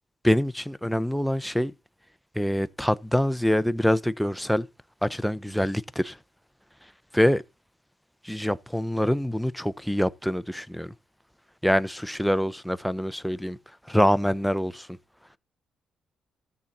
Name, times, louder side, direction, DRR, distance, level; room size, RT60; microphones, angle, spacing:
voice 1, 0.2-1.7 2.4-4.7 5.0-6.1 7.1-7.4 8.2-10.9 11.6-13.6 13.9-14.9, equal, ahead, 0.7 m, -25 dB
13.5 x 7.3 x 4.1 m
cardioid pair, 90°, 0 cm